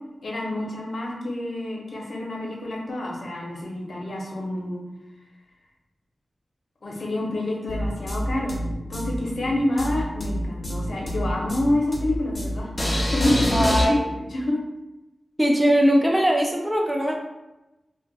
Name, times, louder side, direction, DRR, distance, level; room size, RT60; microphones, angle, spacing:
voice 1, 0.2-4.8 6.8-8.6 8.9-12.7 13.1-14.6, left 1 dB, 75° left, -2 dB, 0.7 m, -27 dB
sound 1, 7.7-13.9, equal, 30° left, 0.7 m, -26 dB
voice 2, 13.5-14.1 15.4-17.1, equal, 10° right, 0 dB, 0.4 m, -20 dB
2.4 x 2.1 x 3.9 m, 0.99 s
cardioid pair, 60°, 0 cm